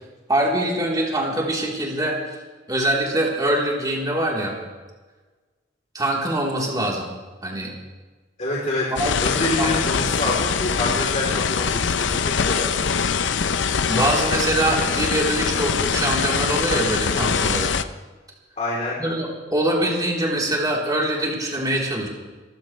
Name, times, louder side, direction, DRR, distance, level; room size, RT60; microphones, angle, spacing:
voice 1, 0.3-2.2 2.7-4.6 5.9-7.1 7.4-7.7 9.0-9.2 9.6-9.7 13.9-17.7 19.0-22.1, right 1 dB, 20° right, -3 dB, 3.6 m, -23 dB
voice 2, 8.4-8.9 9.2-12.7 18.6-19.0, left 2 dB, 40° left, -4 dB, 3.5 m, -26 dB
sound 1, 9.0-17.8, left 6 dB, 70° left, 0.7 m, -23 dB
26.0 x 15.0 x 3.3 m, 1.3 s
head